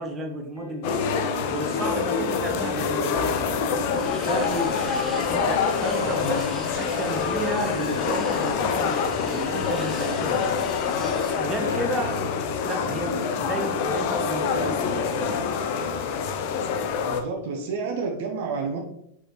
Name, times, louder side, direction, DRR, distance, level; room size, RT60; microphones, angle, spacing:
voice 1, 0.0-10.5 11.4-12.2 12.6-15.4, right 1 dB, 20° right, 3 dB, 1.1 m, -33 dB
sound 1, 0.5-16.1, equal, 85° right, 1.3 m, -38 dB
sound 2, 0.8-17.2, left 6 dB, 45° left, 0.6 m, -26 dB
sound 3, 3.8-11.5, equal, 5° left, 1.3 m, -41 dB
voice 2, 17.0-18.8, right 4 dB, 55° right, 2 dB, 0.9 m, -29 dB
6.3 x 4.9 x 3.1 m, 0.72 s
figure-of-eight pair, 90°, 0 cm